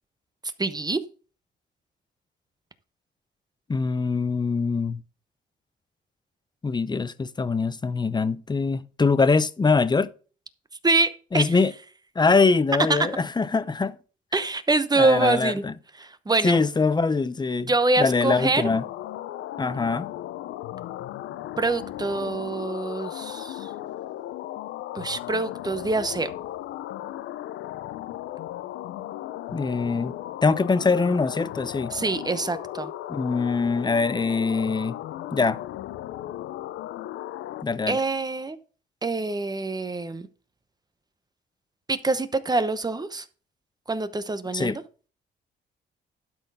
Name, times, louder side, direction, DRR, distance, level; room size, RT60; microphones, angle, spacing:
voice 1, 0.6-1.0 10.8-11.6 12.9-13.0 14.3-15.6 16.0-16.6 17.7-18.6 21.6-23.7 24.9-26.3 31.9-32.9 37.9-38.6 39.0-40.3 41.9-43.2 43.9-44.8, right 3 dB, 20° right, 0.9 m, -25 dB
voice 2, 3.7-5.0 6.6-10.1 11.3-11.7 12.2-14.0 15.0-15.7 16.4-18.8 19.6-20.1 29.5-30.1 30.4-31.9 33.1-35.0 35.3-35.6 37.6-38.0 44.5-44.8, left 4 dB, 20° left, 0.7 m, -23 dB
sound 1, 18.6-37.6, left 13 dB, 85° left, 0.5 m, -36 dB
12.0 x 4.5 x 5.6 m
cardioid pair, 90°, 20 cm